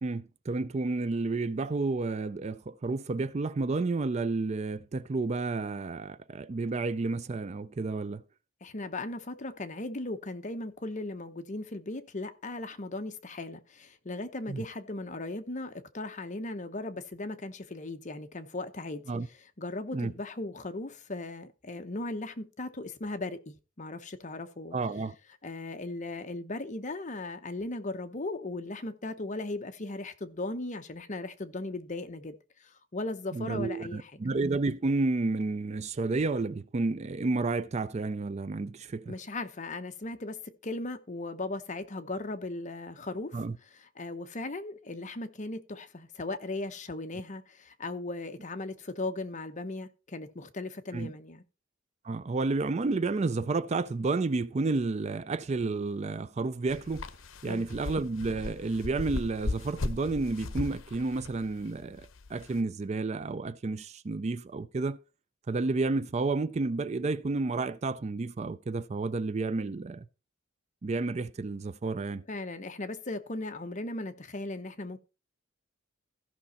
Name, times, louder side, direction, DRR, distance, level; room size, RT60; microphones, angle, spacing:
voice 1, 0.0-8.2 14.5-14.6 19.1-19.3 19.9-20.1 24.7-25.2 33.3-39.1 43.3-43.6 50.9-51.1 52.0-57.0 57.4-65.0 65.5-70.1 70.8-72.2, right 3 dB, 35° right, 0.4 m, -31 dB
voice 2, 8.6-19.0 19.6-24.8 25.4-32.3 32.6-34.2 39.1-43.4 44.0-51.4 57.4-57.9 72.3-75.0, left 2 dB, 40° left, 0.9 m, -37 dB
sound 1, 56.7-62.6, left 2 dB, 80° left, 0.8 m, -37 dB
14.5 x 6.0 x 4.2 m
head